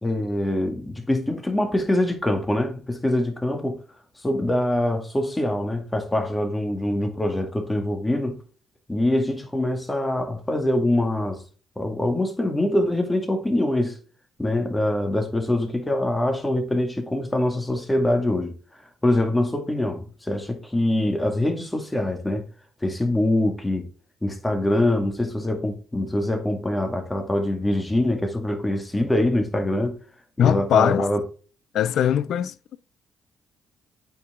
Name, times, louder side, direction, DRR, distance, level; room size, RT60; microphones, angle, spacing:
voice 1, 0.0-3.8 4.2-8.4 8.9-11.4 11.8-14.0 14.4-18.6 19.0-22.4 22.8-23.9 24.2-30.0 30.4-31.2, left 1 dB, 15° left, 2.1 m, -24 dB
voice 2, 30.4-31.1 31.7-32.8, left 10 dB, 70° left, 0.4 m, -21 dB
8.5 x 4.7 x 3.7 m
supercardioid pair, 65°, 0 cm